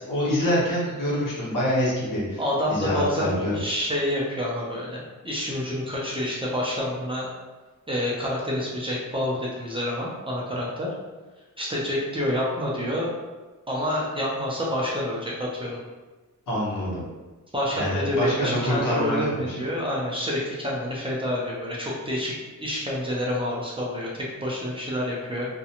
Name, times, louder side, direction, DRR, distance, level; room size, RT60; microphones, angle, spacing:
voice 1, 0.1-2.4 2.7-3.6 16.5-17.0 17.7-19.6, equal, 85° left, -7 dB, 1.0 m, -25 dB
voice 2, 2.4-7.3 7.9-10.9 11.6-13.1 13.7-15.8 17.5-22.3 22.6-25.5, left 1 dB, 15° right, -5 dB, 0.4 m, -28 dB
2.5 x 2.1 x 2.8 m, 1.2 s
wide cardioid pair, 175°, 32 cm